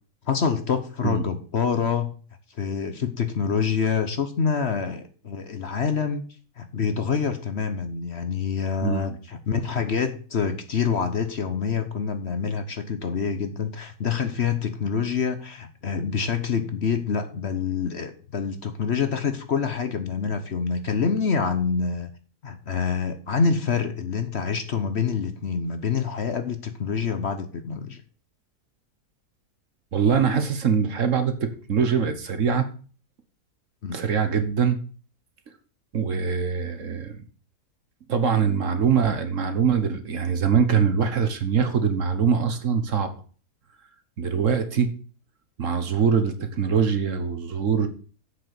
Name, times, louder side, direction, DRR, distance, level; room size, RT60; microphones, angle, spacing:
voice 1, 0.2-2.1 2.5-6.2 6.6-22.1 22.4-28.0 33.8-34.0, left 6 dB, 50° left, 9 dB, 1.1 m, -26 dB
voice 2, 8.8-9.2 29.9-32.7 33.9-34.8 35.9-37.2 38.1-43.1 44.2-44.9 45.6-47.9, right 6 dB, 55° right, 9 dB, 1.5 m, -23 dB
7.7 x 6.6 x 6.9 m, 0.40 s
omnidirectional pair, 1.6 m